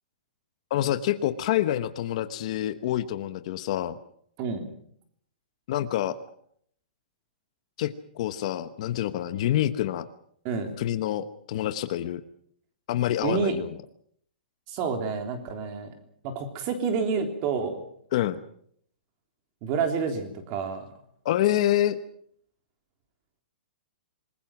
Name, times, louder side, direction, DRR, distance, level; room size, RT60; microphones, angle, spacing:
voice 1, 0.7-4.0 5.7-6.2 7.8-10.1 10.8-12.2 12.9-13.7 18.1-18.4 21.2-22.0, left 12 dB, 40° left, 12 dB, 1.1 m, -27 dB
voice 2, 13.2-13.6 14.7-15.9 16.2-17.8 19.6-20.8, right 5 dB, 30° right, 6 dB, 3.5 m, -28 dB
27.0 x 21.0 x 6.0 m, 0.64 s
hypercardioid pair, 170°, 5 cm